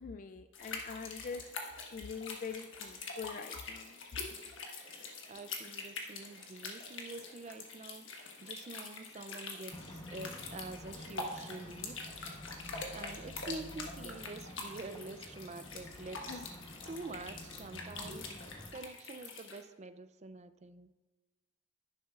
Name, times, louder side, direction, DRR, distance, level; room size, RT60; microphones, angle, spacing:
voice 1, 0.0-1.4 1.9-4.0 9.2-9.3 16.3-16.5, left 5 dB, 40° left, 8 dB, 0.3 m, -44 dB
sound 1, 0.5-19.6, left 3 dB, 65° left, 1.4 m, -45 dB
voice 2, 5.3-12.4 12.9-16.5 16.9-20.9, right 3 dB, 35° right, 11 dB, 0.4 m, -47 dB
sound 2, 9.7-18.7, equal, 20° left, 0.9 m, -50 dB
11.0 x 10.0 x 2.4 m, 1.1 s
head